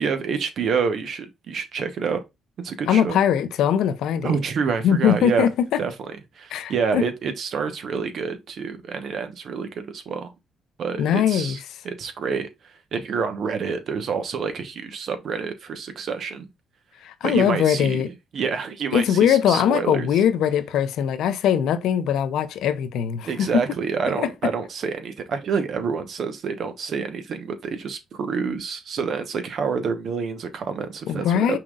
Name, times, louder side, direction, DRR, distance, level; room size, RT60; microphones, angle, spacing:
voice 1, 0.0-2.2 2.6-3.2 4.2-5.5 5.8-5.9 6.4-10.3 10.8-11.6 11.8-12.5 12.9-16.5 17.2-18.0 18.3-20.1 23.2-31.6, right 5 dB, 60° right, 1.1 m, -27 dB
voice 2, 2.9-4.4 4.8-5.8 6.5-7.0 11.0-11.6 17.0-18.1 18.9-23.5 24.2-24.3 31.1-31.6, left 9 dB, 85° left, 0.6 m, -21 dB
5.7 x 3.8 x 2.4 m
cardioid pair, 90°, 0 cm